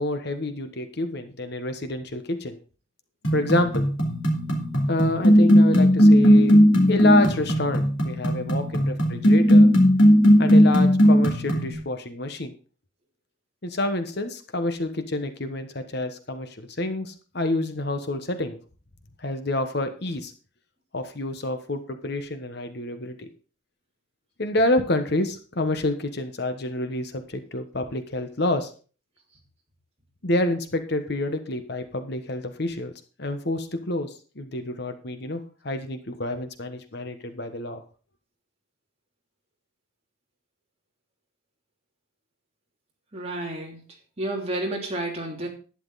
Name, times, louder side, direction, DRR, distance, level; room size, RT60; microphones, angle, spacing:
voice 1, 0.0-2.6 3.3-3.9 4.9-6.6 6.9-9.7 10.4-12.5 13.6-18.6 19.2-20.3 20.9-23.3 24.4-28.7 30.2-32.9 33.2-37.8, left 2 dB, 55° left, 8 dB, 1.3 m, -28 dB
sound 1, 3.2-11.7, equal, 70° left, 3.1 m, -17 dB
voice 2, 43.1-43.8 44.2-45.5, right 1 dB, 30° right, -1 dB, 3.1 m, -30 dB
11.5 x 9.9 x 4.1 m, 0.38 s
head